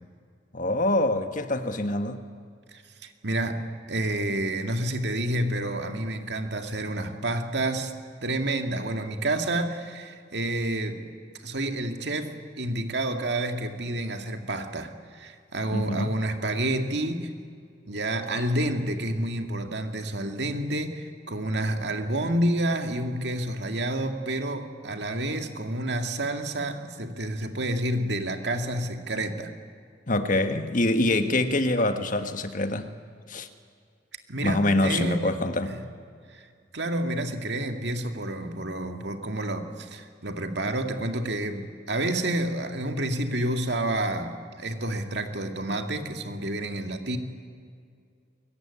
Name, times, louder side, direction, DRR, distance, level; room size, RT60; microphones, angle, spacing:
voice 1, 0.5-2.2 15.7-16.2 30.1-32.9 33.3-33.5 34.4-35.7, left 2 dB, 45° left, 8 dB, 1.6 m, -25 dB
voice 2, 2.7-3.6 3.9-7.9 8.2-11.0 11.4-17.3 17.9-29.5 34.3-35.3 35.6-35.8 36.3-36.5 36.7-47.2, right 1 dB, 65° right, 5 dB, 2.3 m, -29 dB
22.5 x 22.5 x 10.0 m, 2.2 s
head